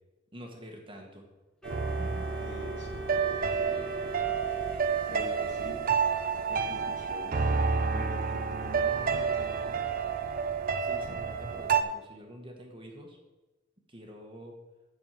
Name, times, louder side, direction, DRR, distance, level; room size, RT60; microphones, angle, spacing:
voice 1, 0.3-1.3 10.8-13.2 13.9-14.6, equal, 25° right, 2 dB, 1.3 m, -47 dB
Organ, 1.6-5.6, equal, 5° left, 1.1 m, -42 dB
sound 1, 1.7-11.8, right 6 dB, 45° right, 0.6 m, -29 dB
voice 2, 2.4-3.1 3.5-4.0 5.1-6.0 6.5-9.8, equal, 60° left, 0 dB, 2.4 m, -46 dB
7.0 x 6.4 x 7.8 m, 1.1 s
head